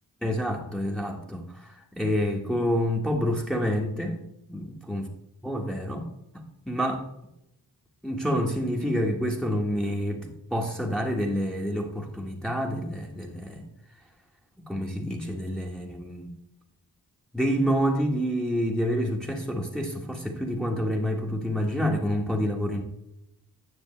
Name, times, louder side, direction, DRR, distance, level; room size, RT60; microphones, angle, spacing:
voice 1, 0.2-4.2 4.5-5.1 5.4-6.1 6.7-7.0 8.0-13.6 14.7-16.3 17.3-22.8, equal, ahead, 0 dB, 1.4 m, -28 dB
9.7 x 6.3 x 3.2 m, 0.81 s
cardioid pair, 45°, 40 cm